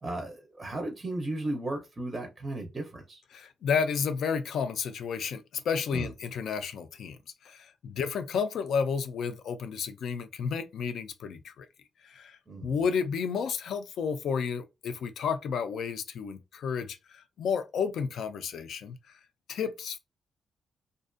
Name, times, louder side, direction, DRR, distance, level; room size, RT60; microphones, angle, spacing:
voice 1, 0.0-3.2 5.9-6.1 12.5-12.7, right 2 dB, 20° right, 0.5 m, -35 dB
voice 2, 3.3-11.7 12.0-19.0 19.5-20.0, left 6 dB, 70° left, 0.3 m, -32 dB
2.4 x 2.2 x 2.4 m
wide cardioid pair, 145°, 0 cm